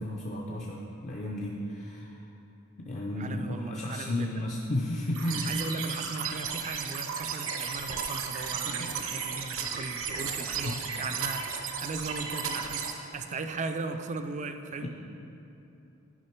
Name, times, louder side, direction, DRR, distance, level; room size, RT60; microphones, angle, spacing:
voice 1, 0.0-2.2 2.8-5.5 8.6-8.9 10.6-10.7 14.8-14.9, left 1 dB, 35° left, -2 dB, 0.5 m, -33 dB
voice 2, 3.2-4.3 5.5-14.9, right 3 dB, 35° right, 8 dB, 0.4 m, -37 dB
sound 1, 5.1-12.9, right 6 dB, 65° right, 0.7 m, -34 dB
9.7 x 5.1 x 4.4 m, 2.9 s
head